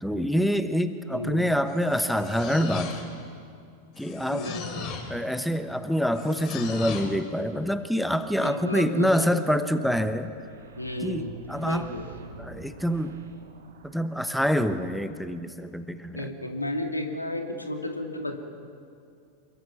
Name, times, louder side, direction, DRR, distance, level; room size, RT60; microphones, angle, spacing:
voice 1, 0.0-3.1 4.0-4.5 5.1-10.3 11.0-11.9 12.4-13.2 13.8-16.3, equal, ahead, 11 dB, 1.0 m, -26 dB
voice 2, 1.1-1.5 4.3-4.9 8.4-9.1 10.8-12.0 16.1-18.3, left 1 dB, 85° left, 4 dB, 2.3 m, -33 dB
sound 1, 1.7-3.3 3.9-5.2 6.1-7.2, left 5 dB, 40° left, 3.6 m, -37 dB
sound 2, 9.4-14.8, right 4 dB, 60° right, 2.5 m, -49 dB
27.0 x 23.0 x 6.0 m, 2.4 s
figure-of-eight pair, 90°, 0 cm